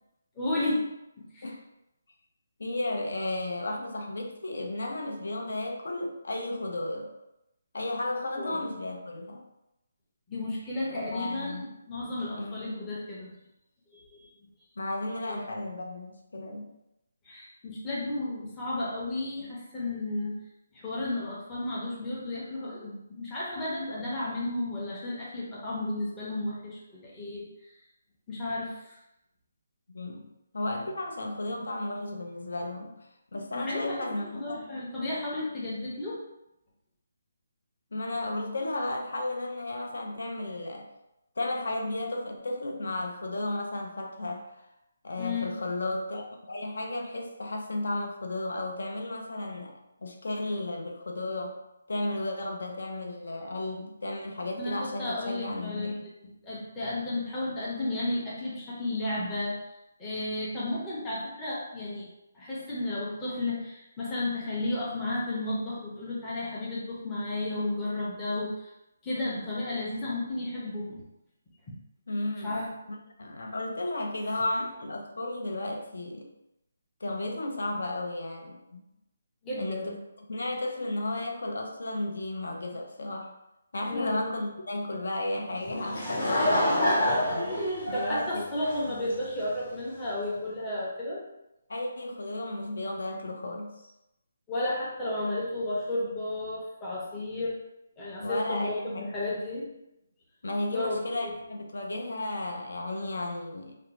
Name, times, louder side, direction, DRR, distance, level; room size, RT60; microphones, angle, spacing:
voice 1, 0.4-0.8 1.3-1.5 8.4-8.6 10.3-13.3 13.9-14.2 15.3-15.4 17.2-20.4 20.7-27.5 28.3-29.0 31.5-31.6 33.5-34.1 34.3-36.2 45.2-45.6 54.6-55.9 56.4-59.6 60.0-62.1 62.3-68.7 69.0-71.0 72.4-72.7 79.4-80.0 83.9-84.2 87.9-91.2 94.5-97.6 98.0-99.7 100.7-101.3, left 2 dB, 10° left, -8 dB, 0.5 m, -33 dB
voice 2, 2.6-7.1 7.7-9.4 10.9-11.8 12.4-12.7 14.8-16.7 29.9-30.3 30.5-32.9 33.3-34.8 37.9-40.9 41.4-44.5 45.0-49.7 50.0-51.6 51.9-55.9 72.1-72.6 73.2-76.3 77.0-78.8 79.6-80.0 80.3-83.3 83.7-87.3 87.9-88.4 88.9-89.0 91.7-93.8 98.2-99.1 100.4-103.8, left 2 dB, 80° left, 2 dB, 0.5 m, -33 dB
Laughter / Crowd, 85.6-89.4, left 1 dB, 40° left, 0.8 m, -27 dB
2.5 x 2.0 x 2.9 m, 0.88 s
hypercardioid pair, 175°, 0 cm